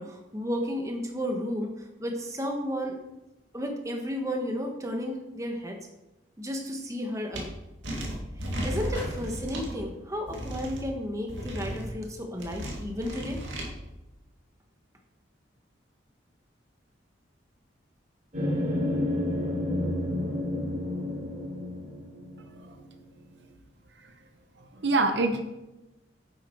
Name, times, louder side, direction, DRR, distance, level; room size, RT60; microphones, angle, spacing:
voice 1, 0.0-3.0 3.5-5.8 6.4-7.5 8.6-13.4, equal, 15° right, 2 dB, 1.3 m, -33 dB
sound 1, 7.3-7.4 7.8-9.7 10.3-10.8 11.3-11.9 12.4-13.7, equal, 85° right, 2.2 m, -34 dB
sound 2, 8.8-10.8, equal, 15° left, 4.1 m, -44 dB
sound 3, 18.3-22.8, left 1 dB, 40° right, 3.8 m, -30 dB
voice 2, 24.6-25.4, right 3 dB, 65° right, 6 dB, 0.9 m, -27 dB
9.8 x 7.9 x 4.6 m, 1.0 s
head